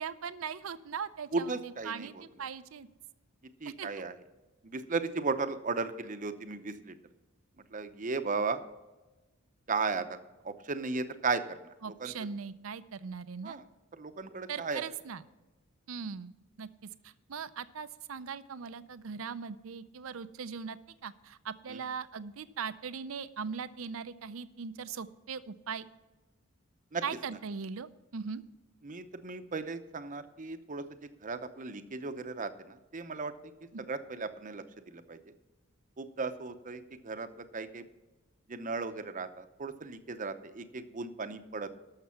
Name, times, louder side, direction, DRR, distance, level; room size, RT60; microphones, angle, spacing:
voice 1, 0.0-1.6 1.9-2.9 3.7-3.9 11.8-13.6 14.5-15.2 15.9-16.3 16.6-16.7 17.0-25.9 27.0-28.4 33.7-33.8, right 6 dB, 80° right, 14 dB, 0.6 m, -40 dB
voice 2, 1.3-2.2 3.6-4.1 4.6-7.0 7.7-8.7 9.7-10.2 10.4-12.1 13.4-13.6 13.9-14.8 21.7-21.8 26.9-27.0 28.8-33.3 33.8-35.3 36.0-37.8 38.5-41.7, right 4 dB, 40° right, 10 dB, 0.7 m, -36 dB
12.5 x 6.6 x 5.7 m, 1.1 s
head